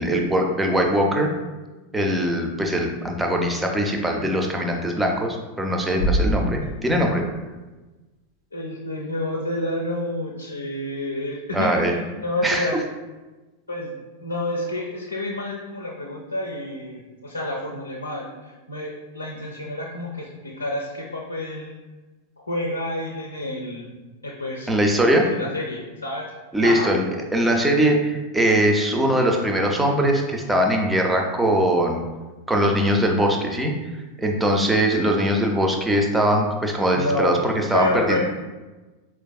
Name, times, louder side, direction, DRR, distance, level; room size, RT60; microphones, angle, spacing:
voice 1, 0.0-1.3 1.9-7.2 11.5-11.9 12.4-12.7 24.7-25.3 26.5-27.0 27.3-32.0 32.5-33.7 34.2-38.2, equal, 10° right, 2 dB, 0.4 m, -21 dB
Bass drum, 6.0-7.7, right 1 dB, 90° right, 0.5 m, -26 dB
voice 2, 8.5-12.8 13.7-13.9 14.2-21.8 22.4-23.9 24.2-24.7 25.3-26.3 26.6-26.9 36.9-38.2, left 1 dB, 80° left, -2 dB, 0.4 m, -29 dB
4.5 x 2.4 x 2.2 m, 1.2 s
figure-of-eight pair, 90°, 0 cm